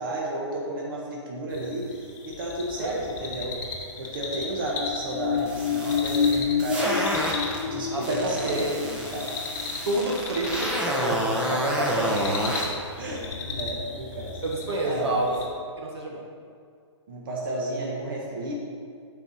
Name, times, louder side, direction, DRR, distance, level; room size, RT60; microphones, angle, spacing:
voice 1, 0.0-2.0 2.2-3.6 4.0-6.9 7.6-9.7 11.8-12.1 13.0-14.4 14.8-15.2 17.1-18.5, right 1 dB, 45° right, -3 dB, 1.3 m, -32 dB
sound 1, 1.5-15.4, left 3 dB, 40° left, 1.1 m, -37 dB
sound 2, 4.6-10.8 11.2-11.3, left 7 dB, 85° left, 0.4 m, -29 dB
sound 3, 5.4-7.6 8.0-12.7, equal, 5° right, 0.6 m, -29 dB
voice 2, 7.9-8.7 9.9-12.3 14.4-15.4 15.8-16.2, right 1 dB, 60° right, -1 dB, 1.4 m, -28 dB
6.9 x 4.7 x 5.6 m, 2.2 s
hypercardioid pair, 160°, 16 cm